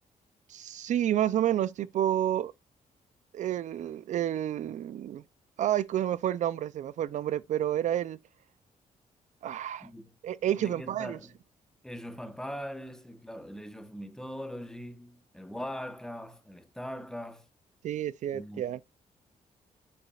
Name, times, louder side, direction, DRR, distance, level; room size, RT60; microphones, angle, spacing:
voice 1, 0.5-2.5 3.3-5.2 5.6-8.2 9.4-9.9 10.2-11.2 17.8-18.8, right 11 dB, 65° right, 0.4 m, -29 dB
voice 2, 9.8-10.1 10.6-11.3 11.8-17.5 18.3-18.8, equal, 5° left, 1.0 m, -41 dB
8.1 x 7.0 x 2.3 m
cardioid pair, 130°, 14 cm